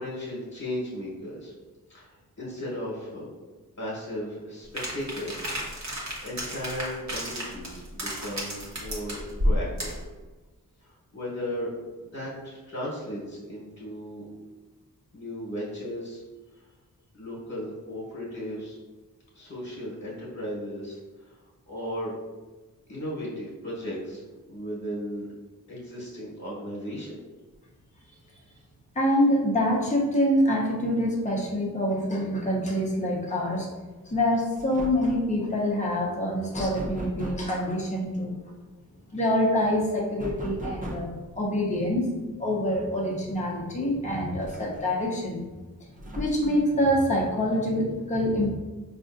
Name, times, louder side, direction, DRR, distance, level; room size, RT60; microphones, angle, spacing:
voice 1, 0.0-1.5 1.9-3.3 3.8-9.2 9.4-9.9 10.8-11.7 12.0-14.2 15.1-16.2 17.1-18.8 19.3-21.4 21.7-22.1 22.9-24.2 24.5-25.3 25.7-27.2, equal, 40° left, -6 dB, 1.3 m, -36 dB
sound 1, 4.8-10.0, equal, 45° right, 1.1 m, -31 dB
voice 2, 28.9-33.7 34.1-38.3 39.1-42.1 42.4-45.4 46.1-48.6, left 1 dB, 20° left, -3 dB, 0.8 m, -25 dB
sound 2, 34.1-34.3 34.6-35.2 36.5-37.6 40.2-41.2 42.8-42.9 43.3-43.4 44.4-45.0 46.0-46.6, right 1 dB, 20° right, 0.6 m, -37 dB
4.9 x 2.5 x 2.5 m, 1.2 s
wide cardioid pair, 80°, 37 cm